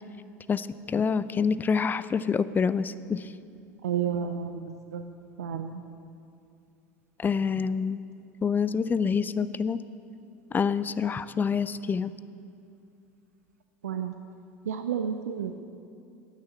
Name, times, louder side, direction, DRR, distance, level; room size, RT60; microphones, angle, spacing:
voice 1, 0.5-3.3 7.2-8.0 8.4-9.8 10.5-12.1, left 6 dB, 25° left, 15 dB, 0.4 m, -27 dB
voice 2, 3.8-5.0 5.4-5.8 13.8-14.1 14.6-15.6, right 8 dB, 85° right, 7 dB, 0.4 m, -31 dB
9.0 x 6.6 x 8.3 m, 2.5 s
hypercardioid pair, 80°, 8 cm